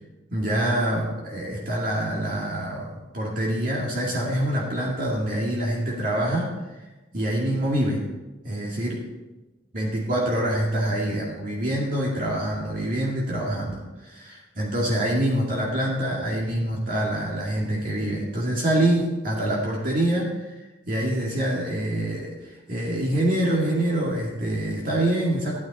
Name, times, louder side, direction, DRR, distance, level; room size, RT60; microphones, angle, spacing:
voice 1, 0.3-6.5 7.1-8.1 8.4-9.1 9.7-20.5 20.9-25.6, right 1 dB, 45° right, -4 dB, 2.2 m, -25 dB
14.5 x 9.5 x 4.2 m, 1.1 s
head